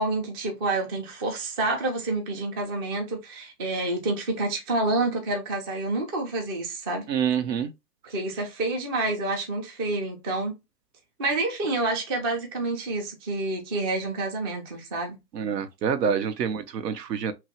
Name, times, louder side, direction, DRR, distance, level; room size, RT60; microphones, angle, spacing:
voice 1, 0.0-7.1 8.0-10.5 11.2-15.2 16.0-16.2, right 2 dB, 20° right, 0.3 m, -28 dB
voice 2, 7.1-7.7 15.3-17.3, right 7 dB, 85° right, 0.7 m, -26 dB
2.9 x 2.3 x 2.8 m
hypercardioid pair, 125°, 47 cm